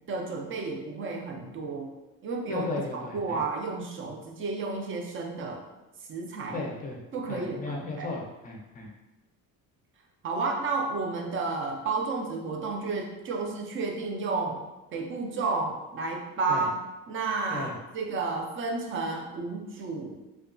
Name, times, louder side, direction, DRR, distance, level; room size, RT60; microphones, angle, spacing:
voice 1, 0.1-1.9 2.2-2.7 2.9-5.6 6.1-6.6 7.1-8.1 10.2-14.6 14.9-16.7 17.1-20.2, right 3 dB, 35° right, 2 dB, 0.4 m, -31 dB
voice 2, 2.5-3.4 6.5-7.0 7.3-8.9 16.5-16.7 17.5-17.7, left 2 dB, 25° left, -1 dB, 0.4 m, -35 dB
2.7 x 2.2 x 2.5 m, 1.0 s
cardioid pair, 135°, 36 cm